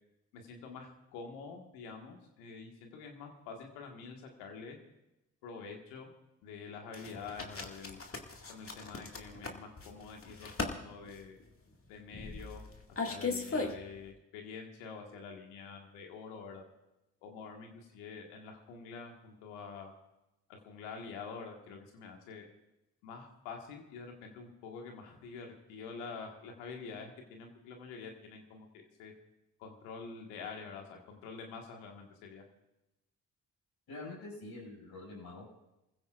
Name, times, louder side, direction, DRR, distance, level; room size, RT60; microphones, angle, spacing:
voice 1, 0.3-4.8 5.4-6.1 6.4-8.0 8.5-11.4 11.9-12.6 12.9-16.6 17.2-19.9 20.5-22.4 23.0-29.1 29.6-32.4, left 5 dB, 85° left, 2 dB, 1.8 m, -47 dB
sound 1, 6.9-14.1, left 3 dB, 35° left, 2.2 m, -39 dB
voice 2, 33.9-35.7, left 2 dB, 65° left, -4 dB, 6.2 m, -46 dB
27.0 x 15.5 x 2.5 m, 0.94 s
hypercardioid pair, 40°, 40 cm